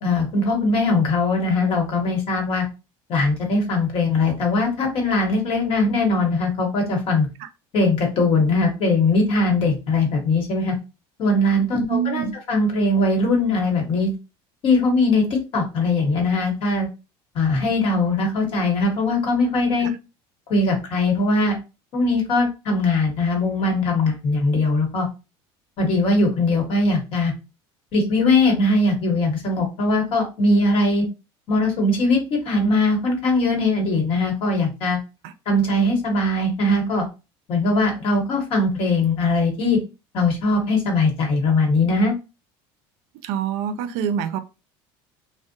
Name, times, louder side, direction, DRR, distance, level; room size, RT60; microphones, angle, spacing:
voice 1, 0.0-2.6 3.1-7.3 7.7-10.7 11.2-14.1 14.6-16.9 17.3-19.9 20.5-21.6 21.9-25.1 25.8-27.3 27.9-31.0 31.5-35.0 35.5-37.0 37.5-39.8 40.1-42.1, left 2 dB, 50° left, 1.1 m, -20 dB
voice 2, 11.8-12.3 19.8-19.9 35.2-35.3 43.2-44.4, right 8 dB, 70° right, 0.4 m, -26 dB
2.6 x 2.0 x 2.5 m
supercardioid pair, 120°, 12 cm